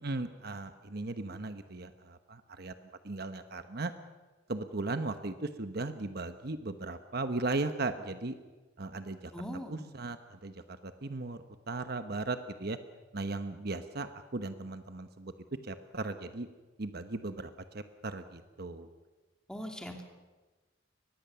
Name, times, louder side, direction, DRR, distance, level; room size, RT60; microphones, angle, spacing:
voice 1, 0.0-2.7 3.0-3.9 4.5-8.3 8.8-9.3 9.7-12.8 13.1-15.3 15.6-16.5 16.8-18.9, right 2 dB, 55° right, 9 dB, 1.1 m, -37 dB
voice 2, 9.3-9.9 19.5-20.0, equal, 5° left, 3 dB, 2.5 m, -40 dB
23.5 x 19.5 x 6.9 m, 1.3 s
head